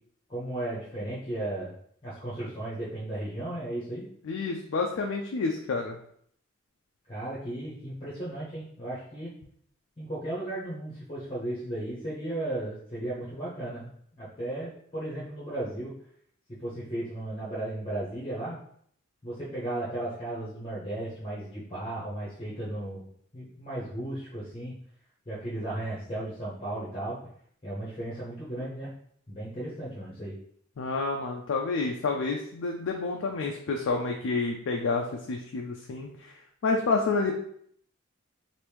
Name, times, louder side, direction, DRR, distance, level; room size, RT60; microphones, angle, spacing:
voice 1, 0.3-1.7 2.0-4.0 7.1-9.3 10.0-13.9 14.2-15.9 16.6-18.6 19.2-23.1 23.3-24.7 25.3-27.2 27.6-28.9 29.3-30.4, right 1 dB, 25° left, -8 dB, 0.8 m, -35 dB
voice 2, 4.2-6.0 30.8-36.3 36.6-37.3, left 3 dB, 85° left, 2 dB, 0.4 m, -29 dB
3.0 x 2.6 x 3.3 m, 0.66 s
head